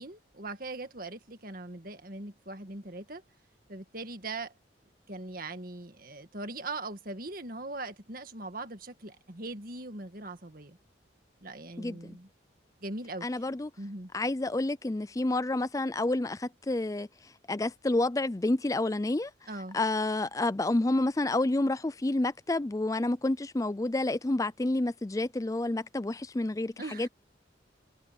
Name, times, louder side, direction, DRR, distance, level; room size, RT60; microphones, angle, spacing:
voice 1, 0.0-3.2 3.7-4.5 5.1-10.8 11.4-12.3 12.8-13.3 13.8-14.1 19.5-19.8 26.8-27.1, right 2 dB, 50° right, 1.9 m, -40 dB
voice 2, 11.8-12.2 13.2-13.7 14.1-17.1 17.5-19.3 19.7-27.1, left 2 dB, 15° left, 0.4 m, -29 dB
head